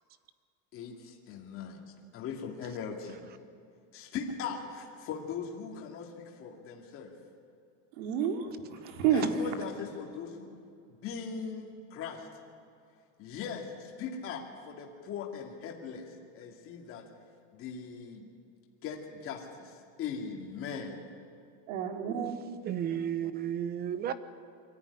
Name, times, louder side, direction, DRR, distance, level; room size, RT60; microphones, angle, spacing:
voice 1, 0.7-1.8 2.1-3.2 3.9-7.2 9.1-10.5 10.9-12.3 13.2-17.1 17.5-18.3 18.8-21.0, left 6 dB, 35° left, 0 dB, 2.4 m, -40 dB
voice 2, 8.0-9.6 21.7-22.3, right 7 dB, 85° right, 4 dB, 2.7 m, -30 dB
voice 3, 22.6-24.1, right 10 dB, 25° right, 14 dB, 0.7 m, -32 dB
23.5 x 14.0 x 9.8 m, 2.4 s
cardioid pair, 175°, 38 cm